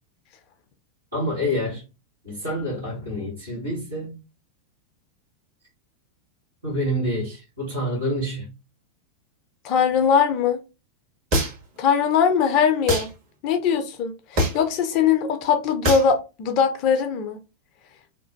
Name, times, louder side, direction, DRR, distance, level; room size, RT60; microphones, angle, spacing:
voice 1, 1.1-1.8 2.2-4.2 6.6-8.5, equal, 80° right, 1.6 m, -27 dB
voice 2, 9.6-10.6 11.8-13.1 13.4-17.4, left 7 dB, 40° left, 0.4 m, -21 dB
sound 1, 11.3-11.8 12.9-13.1 14.4-14.7 15.8-16.1, equal, 40° right, 1.4 m, -23 dB
2.8 x 2.1 x 2.5 m
figure-of-eight pair, 90°, 0 cm